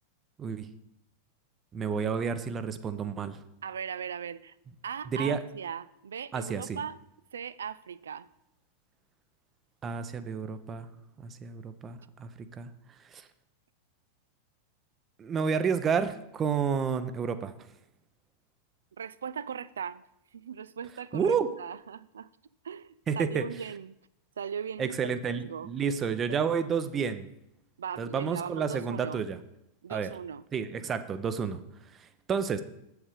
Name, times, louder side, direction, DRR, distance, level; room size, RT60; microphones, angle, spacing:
voice 1, 1.7-3.4 5.1-5.4 6.3-6.8 9.8-10.9 11.2-12.3 12.6-12.7 13.1-13.2 15.2-17.5 21.1-21.5 23.1-23.4 24.8-27.3 28.0-29.4 29.9-30.1 30.5-31.6 32.3-32.6, right 6 dB, 25° right, 0.7 m, -30 dB
voice 2, 3.6-4.5 4.8-7.0 7.3-8.3 19.0-20.0 20.3-22.3 22.6-24.0 24.4-25.7 26.0-26.4 27.8-29.2 29.8-30.4, right 7 dB, 65° right, 0.3 m, -39 dB
8.5 x 8.0 x 4.9 m
figure-of-eight pair, 90°, 0 cm